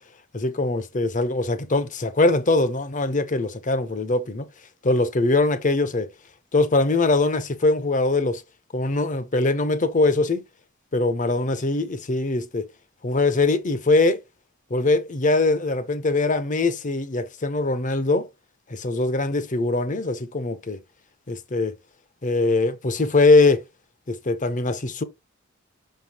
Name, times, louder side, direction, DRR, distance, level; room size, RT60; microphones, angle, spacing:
voice 1, 0.3-4.5 4.8-6.1 6.5-8.4 8.7-10.4 10.9-12.7 13.0-14.2 14.7-18.3 18.7-20.8 21.3-21.7 22.2-23.6 24.1-25.0, left 2 dB, 40° left, 0.8 m, -22 dB
6.2 x 5.5 x 3.0 m
head